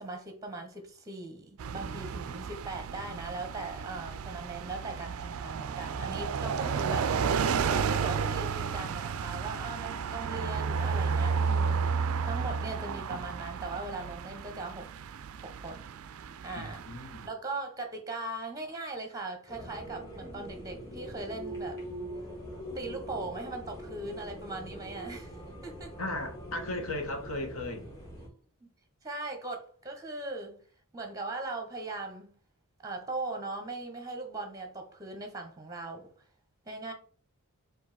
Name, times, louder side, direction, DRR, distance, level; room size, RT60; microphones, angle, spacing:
voice 1, 0.0-14.9 15.4-15.9 16.4-16.8 17.2-21.8 22.7-25.9 28.2-28.7 29.0-30.6 30.9-32.3 32.8-36.1 36.7-36.9, right 2 dB, 15° right, 0.8 m, -39 dB
sound 1, 1.6-17.3, right 6 dB, 70° right, 0.3 m, -32 dB
voice 2, 16.6-17.3 26.0-27.9, left 2 dB, 65° left, 1.2 m, -36 dB
sound 2, 19.5-28.3, equal, 15° left, 1.9 m, -43 dB
4.6 x 2.7 x 4.0 m
head